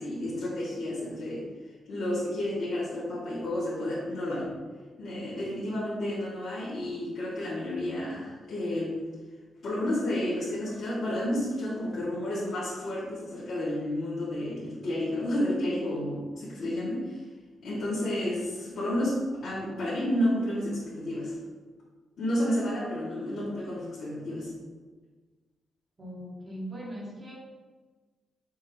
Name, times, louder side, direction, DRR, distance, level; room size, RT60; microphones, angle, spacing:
voice 1, 0.0-1.5 1.9-4.5 5.0-9.0 9.6-17.2 17.6-21.4 22.2-24.5, left 1 dB, 55° left, -10 dB, 2.2 m, -31 dB
voice 2, 26.0-27.4, equal, 20° right, -4 dB, 1.9 m, -39 dB
7.4 x 5.6 x 3.0 m, 1.4 s
cardioid pair, 140°, 0 cm